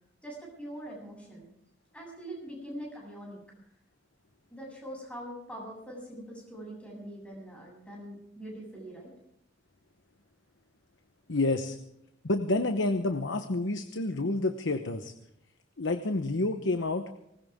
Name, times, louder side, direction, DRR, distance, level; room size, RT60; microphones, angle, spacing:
voice 1, 0.2-1.5 1.9-3.4 4.5-9.1, right 1 dB, 5° left, -3 dB, 7.9 m, -43 dB
voice 2, 11.3-11.8 12.2-15.1 15.8-17.1, left 2 dB, 80° left, 8 dB, 1.0 m, -29 dB
20.0 x 19.5 x 3.6 m, 0.80 s
head